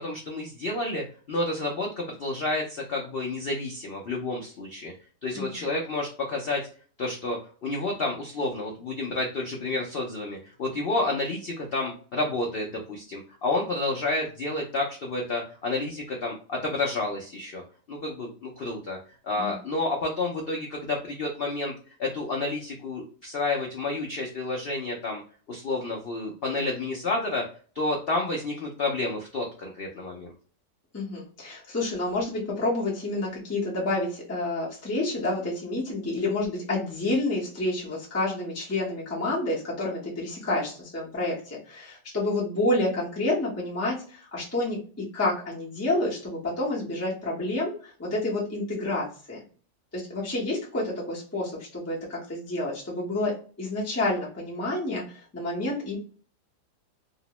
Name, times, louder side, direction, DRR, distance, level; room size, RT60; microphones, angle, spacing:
voice 1, 0.0-4.9 5.2-6.6 7.0-17.6 17.9-19.0 19.2-25.2 25.5-27.4 27.7-30.3, left 2 dB, 85° left, 0 dB, 0.5 m, -30 dB
voice 2, 30.9-44.8 45.1-47.7 48.0-49.4 49.9-53.3 53.6-56.0, left 2 dB, 15° left, -5 dB, 0.7 m, -29 dB
2.8 x 2.0 x 2.9 m, 0.40 s
omnidirectional pair, 1.8 m